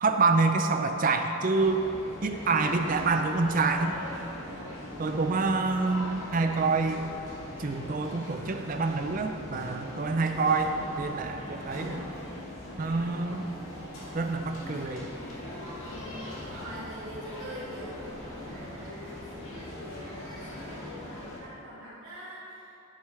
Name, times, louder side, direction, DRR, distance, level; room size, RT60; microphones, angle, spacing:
voice 1, 0.0-1.8 2.2-3.9 5.0-7.1 7.6-12.1 12.8-13.5 14.1-15.1, right 3 dB, 40° right, 5 dB, 0.4 m, -27 dB
sound 1, 1.5-21.4, left 1 dB, 70° left, 1.7 m, -41 dB
voice 2, 16.2-22.8, equal, 65° right, -10 dB, 1.6 m, -45 dB
10.5 x 6.9 x 3.3 m, 2.9 s
head